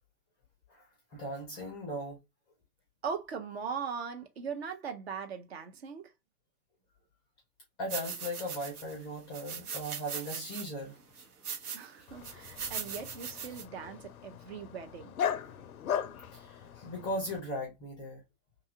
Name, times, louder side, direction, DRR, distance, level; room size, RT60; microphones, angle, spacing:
voice 1, 1.1-2.2 7.8-11.3 16.3-18.2, equal, 10° left, 0.5 m, -38 dB
voice 2, 3.0-6.1 11.7-15.1, right 6 dB, 45° right, 0.5 m, -40 dB
sound 1, 7.9-9.0 9.3-10.7 11.2-11.9 12.2-13.6, right 7 dB, 70° right, 0.8 m, -40 dB
Dog, 12.1-17.4, left 8 dB, 65° left, 0.5 m, -38 dB
2.7 x 2.3 x 2.6 m
figure-of-eight pair, 105°, 47 cm